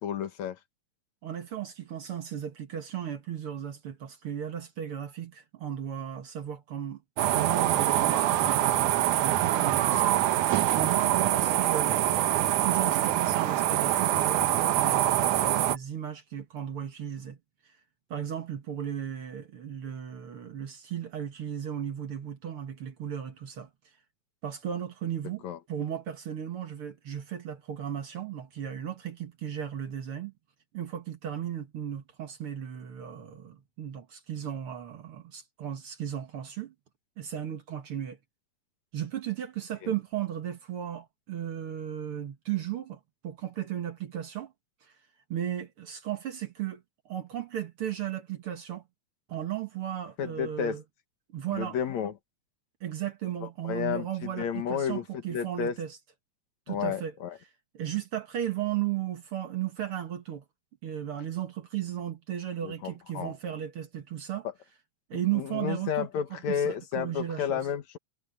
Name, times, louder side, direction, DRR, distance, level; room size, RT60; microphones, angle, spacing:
voice 1, 0.0-0.6 25.4-25.6 39.8-39.9 50.2-50.8 51.5-52.1 53.4-55.0 55.3-55.8 56.7-57.3 62.6-63.3 65.1-68.0, left 8 dB, 60° left, 2.6 m, -32 dB
voice 2, 1.2-7.0 7.3-17.4 18.1-23.7 24.4-25.4 25.7-30.3 30.7-36.7 37.2-38.2 38.9-44.5 44.8-44.9 45.3-48.8 49.3-50.8 51.3-51.8 52.8-56.0 56.7-57.1 57.7-60.4 60.8-64.5 65.1-67.6, right 10 dB, 55° right, 1.8 m, -35 dB
sound 1, 7.2-15.8, right 13 dB, 70° right, 2.3 m, -25 dB
omnidirectional pair, 4.0 m